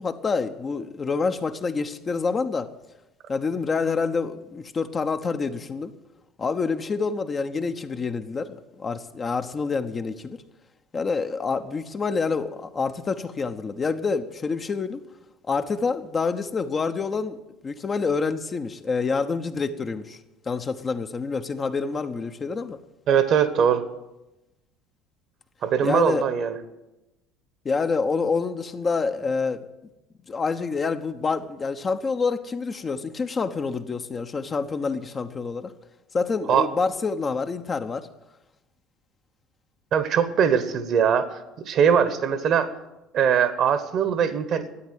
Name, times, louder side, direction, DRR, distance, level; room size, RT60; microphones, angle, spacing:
voice 1, 0.0-2.7 3.3-5.9 6.4-10.4 10.9-15.0 15.5-20.2 20.5-22.8 25.8-26.2 27.6-29.6 30.3-35.7 36.1-38.1, left 4 dB, 30° left, 8 dB, 1.0 m, -27 dB
voice 2, 23.1-23.8 25.6-26.6 36.5-36.7 39.9-41.3 41.6-42.7 43.1-44.8, right 7 dB, 50° right, 12 dB, 1.3 m, -21 dB
13.0 x 9.3 x 9.2 m, 0.98 s
figure-of-eight pair, 65°, 0 cm